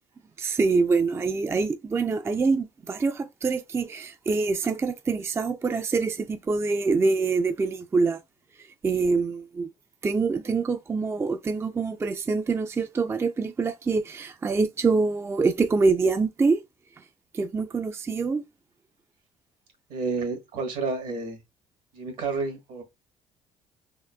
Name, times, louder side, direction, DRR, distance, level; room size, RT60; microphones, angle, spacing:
voice 1, 0.4-8.2 8.8-9.7 10.0-16.6 17.3-18.4, right 4 dB, 20° right, 0.3 m, -25 dB
voice 2, 19.9-21.4 21.9-22.8, right 4 dB, 75° right, 1.4 m, -30 dB
3.6 x 2.1 x 2.3 m
supercardioid pair, 75°, 13 cm